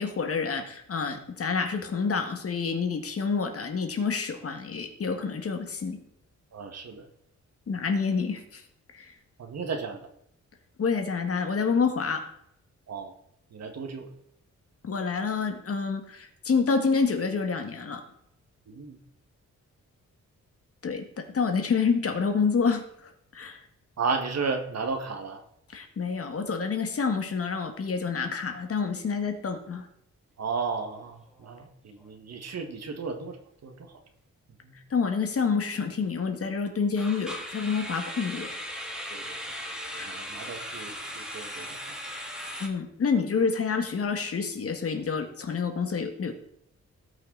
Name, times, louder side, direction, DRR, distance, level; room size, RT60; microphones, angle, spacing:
voice 1, 0.0-6.0 7.7-8.6 8.9-9.1 10.8-12.2 14.8-18.0 20.8-22.8 23.3-23.6 25.7-29.9 34.9-38.5 39.9-40.2 42.6-46.3, left 5 dB, 50° left, 6 dB, 1.7 m, -28 dB
voice 2, 6.5-7.1 9.4-10.0 12.9-13.1 13.5-14.1 18.7-19.0 24.0-25.4 30.4-33.4 33.6-34.0 34.6-34.7 39.1-39.4 39.9-42.3, right 4 dB, 60° right, 6 dB, 1.7 m, -34 dB
sound 1, 30.8-31.0 31.3-31.5 32.0-32.1 37.0-42.7, equal, 5° right, 1.9 m, -38 dB
18.0 x 5.9 x 3.9 m, 0.74 s
wide cardioid pair, 115°, 29 cm